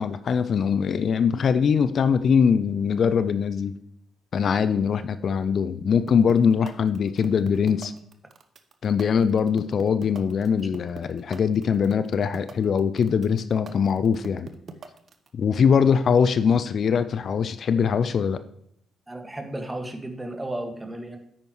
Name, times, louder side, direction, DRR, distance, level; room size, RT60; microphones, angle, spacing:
voice 1, 0.0-3.7 4.3-7.9 8.8-14.5 15.3-18.4, left 6 dB, 55° left, 12 dB, 0.4 m, -22 dB
sound 1, 6.1-15.3, right 5 dB, 50° right, 0.9 m, -40 dB
voice 2, 19.1-21.2, right 1 dB, 15° right, 5 dB, 1.8 m, -34 dB
9.8 x 8.8 x 3.1 m, 0.73 s
hypercardioid pair, 40°, 0 cm